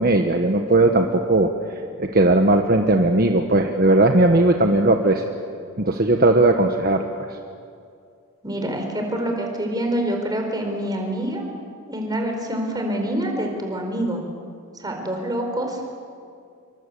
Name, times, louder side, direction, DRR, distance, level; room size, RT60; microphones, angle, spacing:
voice 1, 0.0-1.5 2.0-5.3 5.8-7.0, right 2 dB, 40° right, 4 dB, 1.3 m, -17 dB
voice 2, 8.4-11.5 11.9-14.2 14.8-15.8, right 1 dB, 20° right, 3 dB, 4.4 m, -26 dB
27.0 x 24.0 x 8.4 m, 2.3 s
head